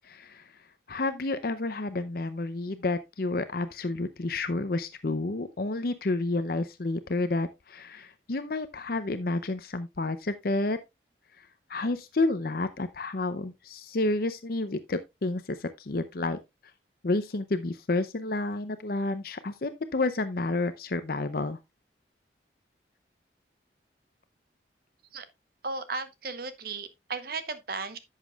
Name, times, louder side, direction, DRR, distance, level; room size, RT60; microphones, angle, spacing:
voice 1, 0.0-0.5 0.9-10.8 11.4-16.4 17.0-21.6, left 2 dB, 55° left, 0.6 m, -30 dB
voice 2, 25.6-28.0, right 4 dB, 55° right, 1.0 m, -35 dB
11.0 x 7.4 x 2.4 m
head